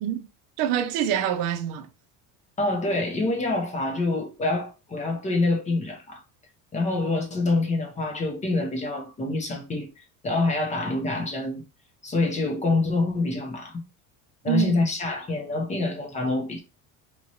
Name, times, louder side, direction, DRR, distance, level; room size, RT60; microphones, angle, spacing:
voice 1, 0.6-1.9 14.4-14.9, right 10 dB, 65° right, 0.6 m, -26 dB
voice 2, 2.6-6.2 6.7-11.6 12.0-13.8 14.4-16.6, left 2 dB, 20° left, 0.6 m, -26 dB
3.0 x 2.9 x 2.7 m
cardioid pair, 165°, 36 cm